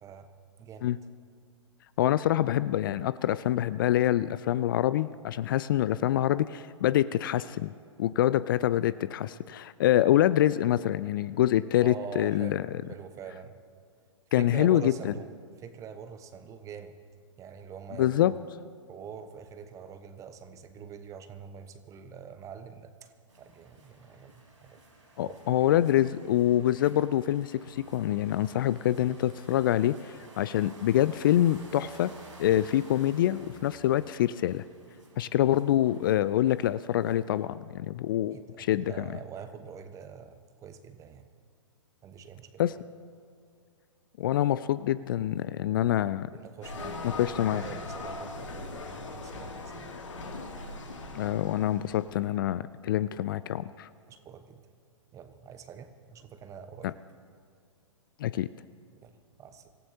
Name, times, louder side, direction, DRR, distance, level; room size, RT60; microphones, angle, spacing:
voice 1, 0.6-0.9 11.8-13.6 14.3-15.3 15.6-17.0 17.4-18.4 18.9-24.8 25.2-25.7 38.3-41.2 42.0-42.7 46.3-49.9 54.1-54.6 55.1-57.0 58.9-59.7, right 7 dB, 20° right, 9 dB, 1.0 m, -45 dB
voice 2, 2.0-7.7 8.0-12.6 14.3-15.1 18.0-18.3 25.2-32.1 32.4-34.6 35.2-39.0 42.6-42.7 44.2-46.3 47.2-47.6 51.1-53.9 56.8-56.9 58.2-58.5, left 12 dB, 45° left, 16 dB, 0.4 m, -26 dB
sound 1, 23.3-37.4, right 2 dB, 85° right, 3.9 m, -54 dB
sound 2, 46.6-52.2, left 3 dB, 75° left, 2.5 m, -40 dB
26.0 x 15.5 x 2.8 m, 2.2 s
figure-of-eight pair, 115°, 16 cm